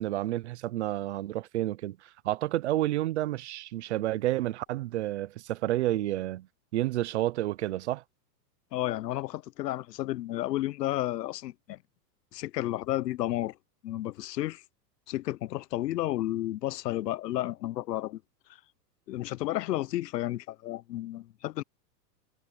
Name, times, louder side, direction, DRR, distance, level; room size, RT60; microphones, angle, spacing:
voice 1, 0.0-6.5 6.7-8.0, right 15 dB, 45° right, 0.6 m, -30 dB
voice 2, 8.7-11.8 12.3-13.6 13.8-14.6 15.1-18.2 18.5-18.6 19.1-21.6, left 15 dB, 90° left, 0.9 m, -32 dB
supercardioid pair, 170°, 48 cm